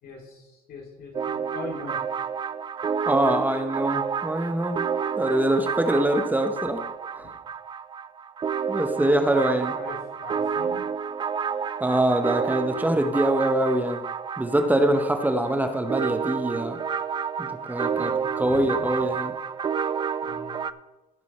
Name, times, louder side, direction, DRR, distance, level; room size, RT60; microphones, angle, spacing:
voice 1, 0.0-2.0 6.6-6.7 7.2-7.3 8.8-9.0 9.7-10.9 17.9-19.1 20.2-20.5, left 3 dB, 65° left, 1 dB, 2.8 m, -41 dB
sound 1, 1.1-20.7, right 6 dB, 25° right, 0.4 m, -30 dB
voice 2, 3.1-4.9 5.2-6.8 7.1-7.3 8.7-9.8 11.8-14.0 14.4-16.8 17.4-19.3, right 1 dB, 10° right, 6 dB, 0.9 m, -24 dB
16.0 x 6.1 x 4.4 m, 1.1 s
cardioid pair, 110°, 17 cm